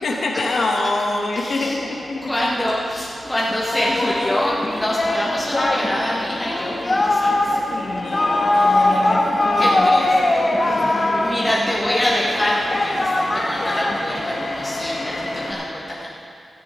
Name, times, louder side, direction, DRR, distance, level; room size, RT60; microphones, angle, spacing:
voice 1, 0.0-2.3 7.7-9.9, left 2 dB, 80° left, 0 dB, 1.4 m, -25 dB
voice 2, 1.3-1.8 2.2-7.6 8.7-9.0 9.5-10.2 10.6-16.1, left 1 dB, 10° left, -6 dB, 1.4 m, -25 dB
sound 1, 1.8-15.5, left 1 dB, 60° left, 3.2 m, -34 dB
Singing, 3.5-14.5, left 2 dB, 35° left, 1.5 m, -21 dB
16.5 x 14.0 x 3.7 m, 2.5 s
wide cardioid pair, 130°, 0 cm